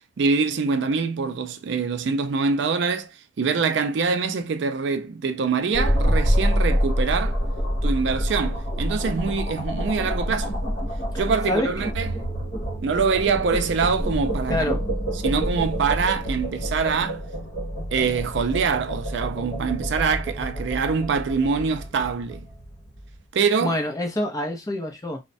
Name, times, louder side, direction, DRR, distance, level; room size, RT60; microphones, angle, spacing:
voice 1, 0.2-3.1 3.4-7.4 7.8-10.6 11.2-12.1 12.8-14.7 15.2-17.2 17.9-22.5 23.3-23.8, right 5 dB, 65° right, 0.4 m, -24 dB
sound 1, 5.7-23.0, equal, 40° left, 1.2 m, -27 dB
voice 2, 14.5-14.8 23.6-25.2, left 1 dB, 20° left, 0.5 m, -26 dB
3.0 x 2.1 x 2.5 m
head